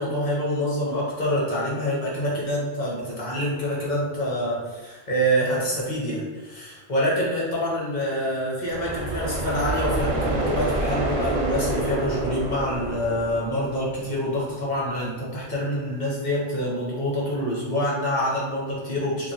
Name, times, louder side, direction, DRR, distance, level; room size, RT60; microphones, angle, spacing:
voice 1, 0.0-19.3, equal, 40° left, -5 dB, 1.0 m, -26 dB
sound 1, 8.6-14.4, right 1 dB, 55° right, 0.5 m, -28 dB
2.9 x 2.8 x 2.9 m, 1.3 s
omnidirectional pair, 1.2 m